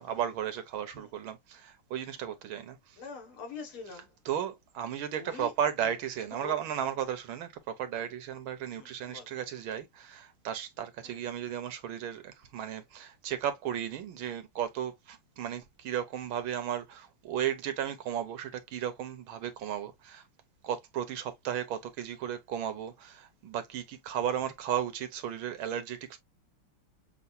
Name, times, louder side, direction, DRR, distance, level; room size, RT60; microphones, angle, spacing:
voice 1, 0.0-3.0 4.2-20.2 20.6-26.2, right 9 dB, 75° right, 1.6 m, -35 dB
voice 2, 3.0-4.1 5.1-5.5 5.8-5.9 6.3-6.9 8.7-9.3 11.0-11.2, left 4 dB, 80° left, 2.4 m, -45 dB
6.9 x 2.4 x 2.6 m
omnidirectional pair, 2.3 m